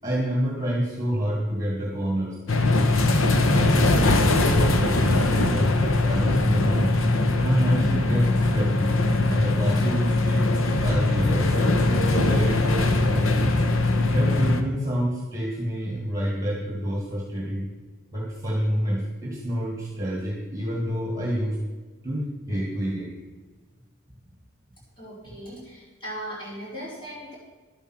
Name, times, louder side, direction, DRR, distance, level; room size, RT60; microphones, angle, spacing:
voice 1, 0.0-2.4 3.5-5.7 6.0-6.9 7.4-8.9 9.3-10.5 10.8-13.5 14.1-17.7 18.1-21.6 22.0-23.1, equal, 15° right, -1 dB, 1.9 m, -28 dB
sound 1, 2.5-14.6, left 2 dB, 75° left, 1.1 m, -21 dB
voice 2, 25.0-27.4, equal, 25° left, -5 dB, 4.9 m, -38 dB
11.5 x 8.8 x 6.2 m, 1.3 s
head